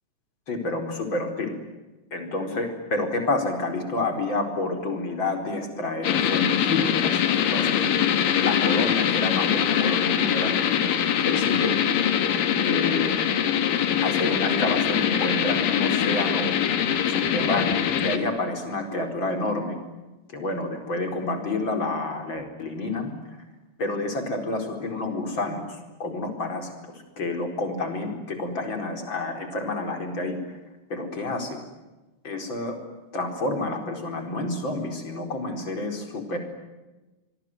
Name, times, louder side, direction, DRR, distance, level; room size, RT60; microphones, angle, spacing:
voice 1, 0.5-1.6 2.1-7.8 8.4-10.5 10.8-10.9 11.2-11.7 12.6-13.1 14.0-16.5 17.1-19.8 20.3-23.1 23.8-30.4 30.9-31.6 32.2-32.8 33.1-36.4, left 2 dB, 25° left, 5 dB, 4.5 m, -29 dB
sound 1, 6.0-18.2, left 9 dB, 55° left, 2.7 m, -23 dB
26.5 x 23.0 x 9.3 m, 1.1 s
omnidirectional pair, 5.9 m